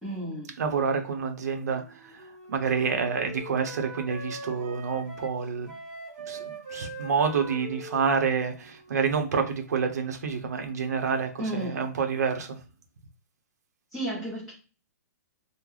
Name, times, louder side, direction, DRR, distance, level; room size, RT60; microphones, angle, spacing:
voice 1, 0.0-0.5 11.4-11.8 13.9-14.5, right 1 dB, ahead, 0.7 m, -32 dB
voice 2, 0.6-5.7 6.3-12.6, right 6 dB, 65° right, 0.8 m, -28 dB
Wind instrument woodwind instrument, 1.7-9.7, right 2 dB, 35° right, 1.2 m, -43 dB
3.8 x 2.1 x 3.1 m
hypercardioid pair, 175°, 9 cm